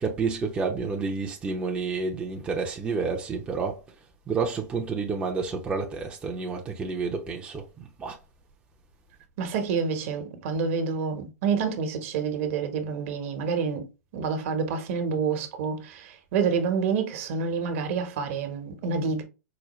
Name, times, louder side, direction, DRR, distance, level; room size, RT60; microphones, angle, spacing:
voice 1, 0.0-3.8 4.3-8.2, right 4 dB, 15° right, 0.6 m, -29 dB
voice 2, 9.4-13.8 14.1-19.2, right 5 dB, 50° right, 1.1 m, -28 dB
5.0 x 2.1 x 3.0 m
hypercardioid pair, 135°, 9 cm